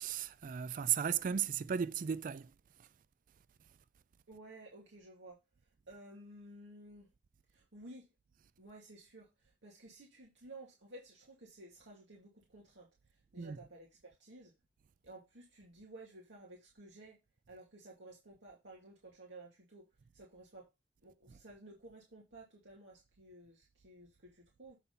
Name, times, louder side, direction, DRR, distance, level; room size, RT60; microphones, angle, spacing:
voice 1, 0.0-2.5 13.4-13.6, right 8 dB, 45° right, 0.3 m, -35 dB
voice 2, 4.3-5.4 5.9-7.1 7.5-8.1 8.6-12.9 13.3-14.5 15.0-17.2 17.5-19.9 20.1-20.7 21.0-24.8, right 2 dB, 70° right, 2.4 m, -54 dB
8.1 x 4.2 x 5.3 m
head